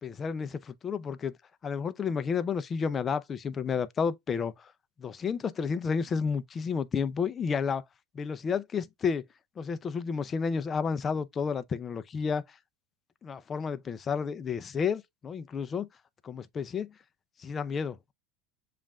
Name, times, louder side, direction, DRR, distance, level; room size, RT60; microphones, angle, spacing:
voice 1, 0.0-1.3 1.6-4.7 5.0-7.8 8.1-9.2 9.6-12.4 13.2-15.9 16.2-16.9 17.4-18.1, left 6 dB, 30° left, 0.5 m, -31 dB
7.1 x 2.5 x 2.3 m
supercardioid pair, 105°, 0 cm